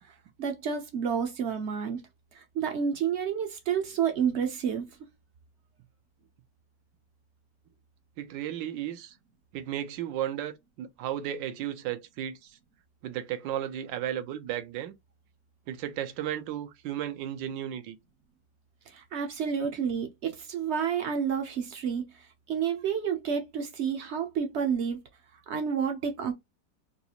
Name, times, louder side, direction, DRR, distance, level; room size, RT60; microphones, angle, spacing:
voice 1, 0.4-2.0 2.3-4.8 18.9-25.0 25.5-26.3, right 7 dB, 70° right, 0.6 m, -30 dB
voice 2, 8.2-9.2 9.5-12.6 13.0-14.9 15.7-18.0, right 11 dB, 90° right, 1.3 m, -34 dB
3.9 x 2.4 x 2.8 m
omnidirectional pair, 1.9 m